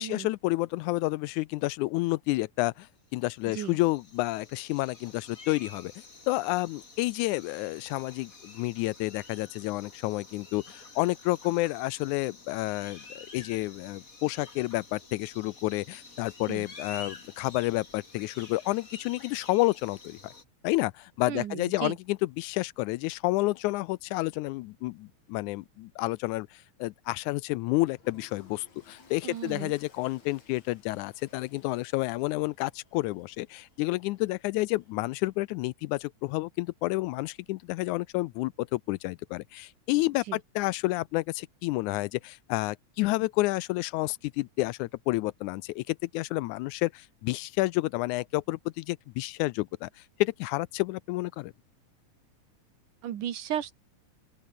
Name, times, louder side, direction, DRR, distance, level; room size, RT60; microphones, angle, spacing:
voice 1, 0.0-5.9 6.3-20.3 20.6-51.5, left 20 dB, 80° left, 1.9 m, -30 dB
sound 1, 3.2-20.4, left 3 dB, 25° left, 3.5 m, -49 dB
voice 2, 21.3-22.0 29.2-29.7 40.3-40.4 53.0-53.8, right 10 dB, 75° right, 3.2 m, -35 dB
Toilet flush, 27.9-35.5, left 4 dB, 60° left, 6.1 m, -60 dB
open air
omnidirectional pair, 3.6 m